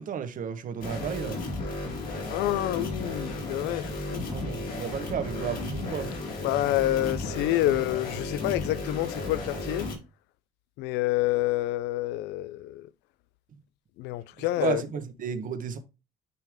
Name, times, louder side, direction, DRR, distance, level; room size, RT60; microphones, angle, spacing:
voice 1, 0.0-1.4 4.3-6.1 13.5-13.6 14.6-15.8, right 7 dB, 50° right, 1.1 m, -33 dB
sound 1, 0.8-10.0, left 2 dB, 60° left, 3.5 m, -34 dB
voice 2, 2.3-4.3 6.4-9.9 10.8-12.9 14.0-14.8, left 16 dB, 90° left, 0.4 m, -28 dB
9.3 x 3.3 x 3.5 m
cardioid pair, 110°, 17 cm